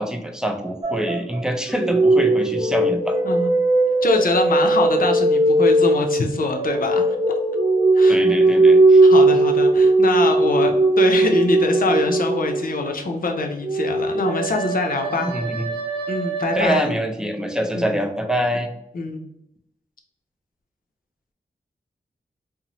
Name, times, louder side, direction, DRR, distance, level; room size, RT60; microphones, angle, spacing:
voice 1, 0.0-3.2 8.1-9.0 15.2-15.7 16.5-18.7, equal, 5° right, 3 dB, 0.5 m, -24 dB
sound 1, 0.8-1.4 1.7-12.7 13.6-16.7, right 2 dB, 30° right, 0.9 m, -18 dB
voice 2, 4.0-7.1 7.9-8.2 9.0-15.3 16.1-16.9 17.7-17.9 18.9-19.2, left 3 dB, 60° left, 3 dB, 0.5 m, -24 dB
2.6 x 2.0 x 2.9 m, 0.81 s
cardioid pair, 45°, 17 cm